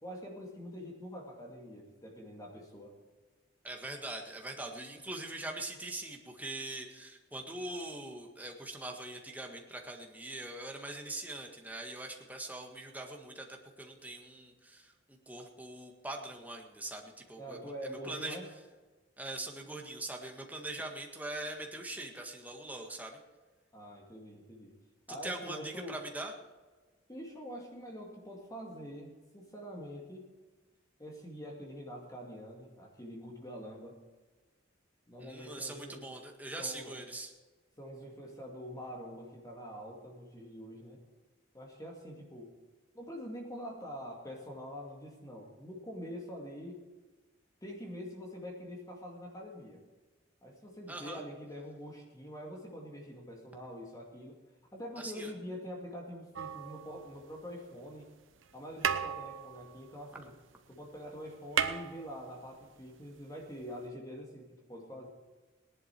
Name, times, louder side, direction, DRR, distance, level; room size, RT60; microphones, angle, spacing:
voice 1, 0.0-2.9 17.4-18.5 23.7-24.7 25.1-26.0 27.1-30.3 31.0-34.0 35.1-36.1 36.6-37.0 37.8-41.0 41.5-42.5 42.9-46.8 47.6-49.8 50.4-54.4 54.7-58.1 58.5-60.3 60.7-65.1, equal, 20° left, 0 dB, 2.1 m, -45 dB
voice 2, 3.6-18.4 19.2-23.2 25.2-26.3 35.2-37.3 50.9-51.2 55.0-55.3, right 2 dB, 10° right, 2 dB, 1.7 m, -42 dB
sound 1, 56.3-57.5 58.4-58.5 58.8-60.7 61.0-61.1 61.3-62.7 63.8-63.9, right 8 dB, 80° right, 0.9 m, -35 dB
18.5 x 11.0 x 4.6 m, 1.3 s
head